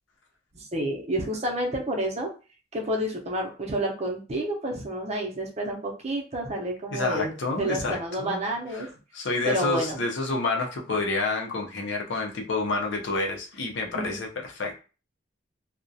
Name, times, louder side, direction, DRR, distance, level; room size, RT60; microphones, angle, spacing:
voice 1, 0.5-2.3 2.7-8.9 9.5-10.0 13.9-14.2, right 1 dB, 35° right, 0 dB, 0.6 m, -29 dB
voice 2, 6.9-8.4 8.7-14.8, left 3 dB, 90° left, 2 dB, 0.5 m, -29 dB
2.3 x 2.1 x 2.6 m, 0.34 s
head